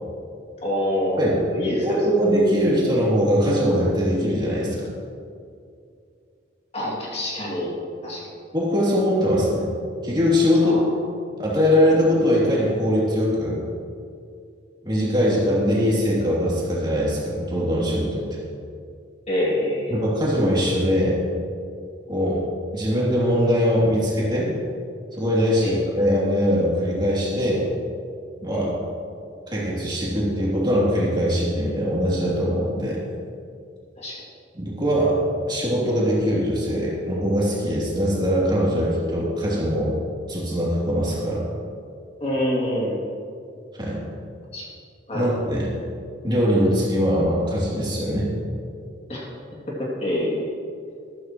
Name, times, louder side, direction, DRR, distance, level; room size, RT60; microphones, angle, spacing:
voice 1, 0.6-2.0 6.7-7.7 8.0-8.3 10.6-10.9 19.3-20.0 25.6-25.8 28.5-28.7 34.0-34.2 42.2-43.0 44.5-44.6 45.1-45.3 49.1-49.3 49.8-50.5, left 1 dB, 35° left, -5 dB, 2.6 m, -26 dB
voice 2, 1.8-4.9 8.5-9.7 10.0-10.8 11.4-13.6 14.8-18.3 19.9-21.2 22.1-22.4 22.7-24.5 25.2-27.7 28.4-28.7 29.5-33.0 34.5-35.2 35.5-40.0 40.3-41.4 43.7-44.0 45.1-45.7 46.2-48.3, equal, 25° right, -7 dB, 3.0 m, -21 dB
13.5 x 13.5 x 3.1 m, 2.4 s
head